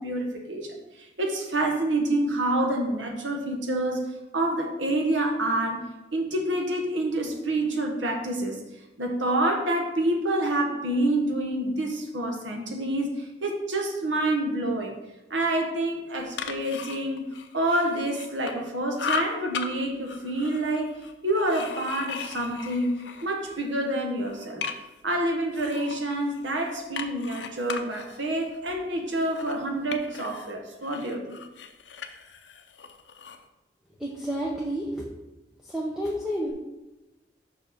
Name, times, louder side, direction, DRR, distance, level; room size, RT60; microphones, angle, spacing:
voice 1, 0.0-4.1 4.3-5.8 6.1-8.6 9.0-14.9 15.3-17.3 17.5-21.0 21.2-22.9 23.2-24.6 25.0-31.4, right 1 dB, 85° right, 2 dB, 1.2 m, -27 dB
sound 1, 16.1-18.7 19.0-19.7 20.1-23.6 24.0-25.0 25.5-30.5 30.8-33.4, left 6 dB, 75° left, 0.6 m, -37 dB
voice 2, 34.0-35.0 35.6-36.5, equal, ahead, -4 dB, 0.7 m, -30 dB
5.7 x 4.8 x 5.0 m, 1.0 s
head